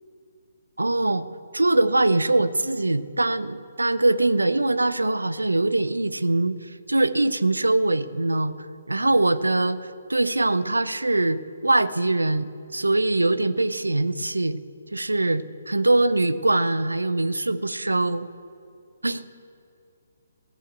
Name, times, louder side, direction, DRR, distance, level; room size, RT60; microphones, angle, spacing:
voice 1, 0.8-1.3 1.5-8.5 8.9-9.8 10.1-14.6 14.9-18.3 19.0-19.3, right 2 dB, 85° right, 14 dB, 0.6 m, -22 dB
15.0 x 7.1 x 7.9 m, 2.5 s
figure-of-eight pair, 140°, 0 cm